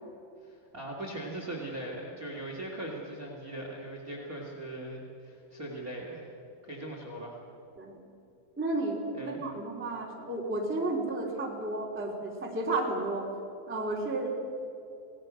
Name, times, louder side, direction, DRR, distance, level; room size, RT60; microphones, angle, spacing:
voice 1, 0.4-6.3 6.6-7.4 9.1-9.4, right 1 dB, 25° right, 0 dB, 2.3 m, -40 dB
voice 2, 8.6-13.3 13.7-14.3, right 2 dB, 5° right, -2 dB, 2.2 m, -32 dB
27.0 x 18.5 x 6.4 m, 2.6 s
omnidirectional pair, 4.9 m